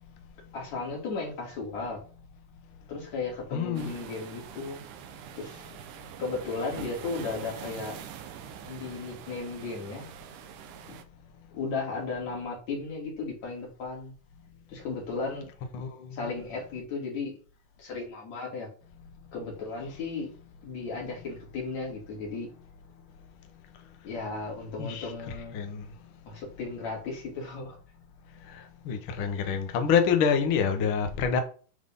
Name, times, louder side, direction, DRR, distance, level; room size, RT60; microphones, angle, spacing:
voice 1, 0.5-2.0 2.9-4.8 5.4-5.7 6.2-8.0 8.6-10.1 10.9-11.0 11.5-14.1 14.7-15.5 16.1-17.3 17.8-18.7 19.3-20.3 20.6-22.5 24.0-25.6 26.3-27.8, left 4 dB, 50° left, 3.7 m, -35 dB
voice 2, 3.5-3.9 15.7-16.1 24.8-25.1 25.5-25.8 28.8-31.4, left 6 dB, 85° left, 1.1 m, -26 dB
sound 1, 3.8-11.0, right 10 dB, 75° right, 2.1 m, -44 dB
10.0 x 4.0 x 3.7 m
omnidirectional pair, 4.1 m